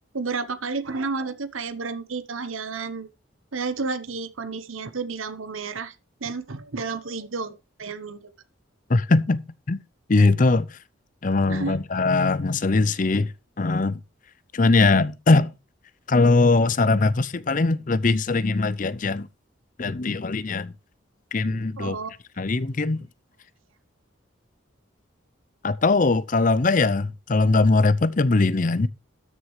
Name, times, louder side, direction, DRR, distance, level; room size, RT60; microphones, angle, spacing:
voice 1, 0.1-3.1 3.5-5.9 6.2-7.5 7.8-8.2 11.5-11.8 21.8-22.1, right 4 dB, 85° right, 1.0 m, -31 dB
voice 2, 8.9-9.4 9.7-9.8 10.1-10.7 11.2-13.3 13.6-14.0 14.5-15.5 16.1-19.3 19.8-20.7 21.3-22.0 22.4-23.0 25.6-28.9, left 3 dB, 40° left, 0.6 m, -21 dB
13.0 x 6.4 x 4.8 m
head